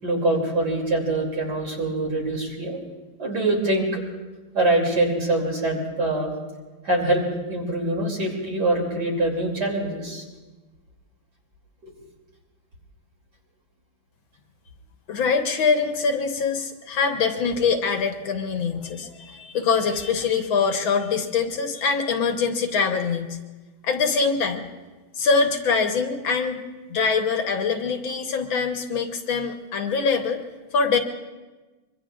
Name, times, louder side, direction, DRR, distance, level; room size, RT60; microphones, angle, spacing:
voice 1, 0.0-2.8 3.2-4.0 4.5-6.3 6.8-10.2, right 2 dB, 50° right, -1 dB, 3.5 m, -24 dB
voice 2, 15.1-23.4 23.8-24.7 25.1-26.6 26.9-30.4 30.7-31.0, left 5 dB, 70° left, 5 dB, 1.8 m, -23 dB
25.0 x 23.5 x 2.5 m, 1.2 s
omnidirectional pair, 2.3 m